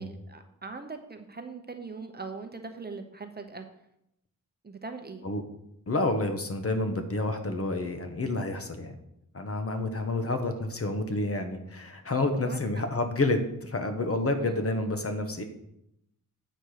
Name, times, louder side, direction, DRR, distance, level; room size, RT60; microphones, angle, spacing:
voice 1, 0.0-3.7 4.6-5.3 12.4-12.6 14.4-14.6, right 4 dB, 30° right, 6 dB, 0.7 m, -41 dB
voice 2, 5.9-8.9 9.3-15.4, left 2 dB, 45° left, 6 dB, 1.0 m, -29 dB
8.1 x 4.4 x 6.4 m, 0.80 s
wide cardioid pair, 130°, 33 cm